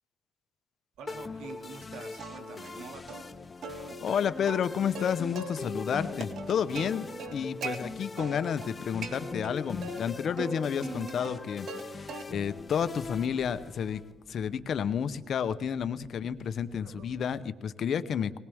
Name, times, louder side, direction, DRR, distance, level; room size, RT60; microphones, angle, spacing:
voice 1, 1.0-3.3, right 5 dB, 85° right, 5 dB, 2.2 m, -46 dB
sound 1, 1.1-14.1, left 4 dB, 30° left, 0.6 m, -41 dB
Plucked string instrument, 2.2-2.8 3.1-3.2 3.6-5.6 5.9-7.8 8.2-8.7 9.0-10.0 10.4-11.8 12.1-12.6 13.0-17.2, right 4 dB, 65° right, 1.8 m, -41 dB
voice 2, 4.0-11.7 11.9-14.0 14.3-18.4, left 7 dB, 60° left, 12 dB, 0.8 m, -31 dB
20.5 x 19.5 x 3.6 m, 1.1 s
cardioid pair, 90°, 0 cm